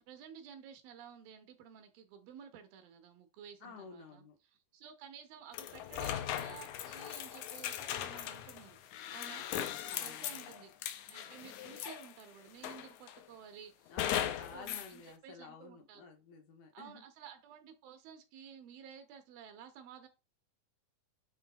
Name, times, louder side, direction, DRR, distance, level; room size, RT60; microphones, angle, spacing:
voice 1, 0.1-8.8 9.1-16.0 16.7-20.1, right 8 dB, 80° right, 2.8 m, -53 dB
voice 2, 3.6-4.4 9.9-10.5 13.9-17.1, left 5 dB, 70° left, 2.4 m, -52 dB
sound 1, 5.5-12.2 12.6-13.2 14.0-14.9, left 11 dB, 90° left, 1.7 m, -39 dB
9.3 x 3.2 x 4.1 m
omnidirectional pair, 4.2 m